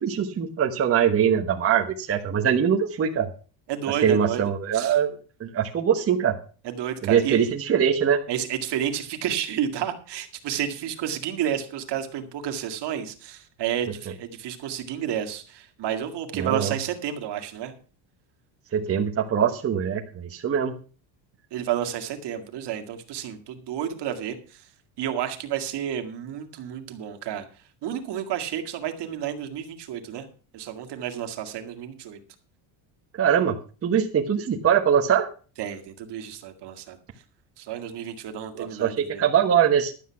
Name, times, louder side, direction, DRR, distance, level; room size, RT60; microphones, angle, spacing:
voice 1, 0.0-3.3 3.9-5.1 5.4-6.3 7.0-8.2 16.3-16.7 18.7-20.7 33.2-33.5 33.8-35.3 38.6-39.9, right 8 dB, 30° right, 1 dB, 1.2 m, -22 dB
voice 2, 3.7-4.4 4.7-5.0 6.6-7.5 8.3-17.7 21.5-24.6 25.0-27.5 27.8-30.3 30.5-32.2 35.6-37.0 37.6-39.2, right 10 dB, 55° right, 6 dB, 2.1 m, -31 dB
12.0 x 8.3 x 5.8 m, 0.38 s
cardioid pair, 145°, 49 cm